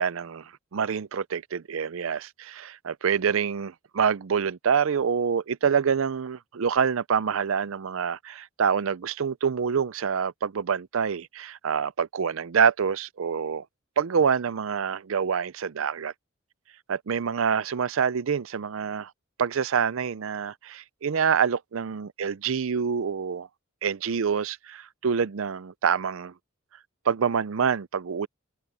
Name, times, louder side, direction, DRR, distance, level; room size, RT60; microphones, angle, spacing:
voice 1, 0.0-13.6 14.0-16.1 16.9-19.1 19.4-23.5 23.8-26.3 27.1-28.3, right 6 dB, 70° right, 0.5 m, -26 dB
head